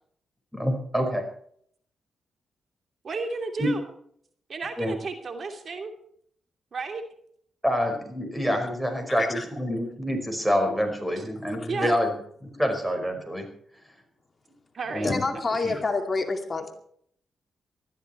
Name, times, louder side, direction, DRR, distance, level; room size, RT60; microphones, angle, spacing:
voice 1, 0.5-1.2 3.6-3.7 4.8-5.0 7.6-12.1 12.6-13.5 14.9-15.2 15.6-15.8, equal, 5° right, 5.3 m, -26 dB
voice 2, 3.0-3.8 4.5-5.9 6.7-7.0 11.2-11.3 11.7-12.0 14.7-15.1 15.5-15.8, right 4 dB, 50° right, 2.8 m, -33 dB
voice 3, 9.1-9.4 11.6-11.7 15.0-16.7, left 3 dB, 35° left, 2.4 m, -28 dB
19.5 x 13.5 x 4.5 m
cardioid pair, 80°, 0 cm